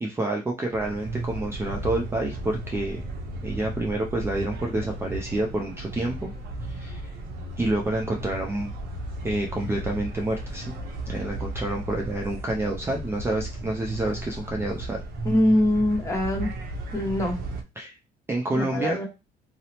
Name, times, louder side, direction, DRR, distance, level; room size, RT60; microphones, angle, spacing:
voice 1, 0.0-3.0 3.4-6.3 6.7-7.1 7.6-8.7 9.2-10.7 11.1-15.0 17.8-17.9 18.3-19.0, right 2 dB, 15° right, 1 dB, 0.4 m, -28 dB
sound 1, 0.7-17.6, right 1 dB, 60° right, 0.6 m, -35 dB
voice 2, 15.2-16.5 16.9-17.4 18.5-19.1, left 1 dB, 15° left, 0 dB, 0.9 m, -23 dB
2.7 x 2.0 x 2.8 m, 0.26 s
cardioid pair, 110°, 17 cm